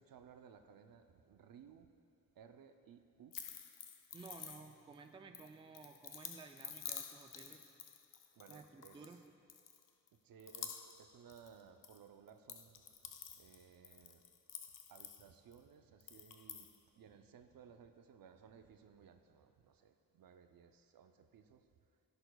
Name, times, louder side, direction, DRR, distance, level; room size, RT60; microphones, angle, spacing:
voice 1, 0.0-1.9 2.4-3.4 8.4-9.1 10.2-12.8 13.4-14.2 14.9-16.7 16.9-21.6, right 7 dB, 75° right, 7 dB, 0.5 m, -60 dB
sound 1, 3.3-4.9 5.3-9.2 9.5-10.1 10.4-12.0 12.3-15.6 16.0-16.8, left 8 dB, 65° left, 0.6 m, -50 dB
voice 2, 4.1-7.6 8.5-9.2, right 4 dB, 15° right, 6 dB, 0.3 m, -55 dB
17.0 x 6.9 x 2.2 m, 2.5 s
wide cardioid pair, 150°, 35 cm